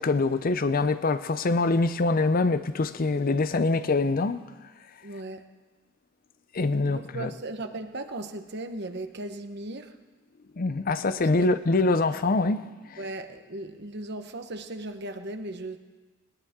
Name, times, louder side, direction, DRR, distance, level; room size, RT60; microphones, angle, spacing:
voice 1, 0.0-4.4 6.5-7.3 10.6-12.6 12.9-13.0, left 3 dB, 45° left, 0.6 m, -24 dB
voice 2, 5.0-5.4 6.8-9.9 11.4-11.5 13.0-15.8, right 2 dB, 55° right, 1.1 m, -37 dB
20.0 x 19.0 x 3.7 m
head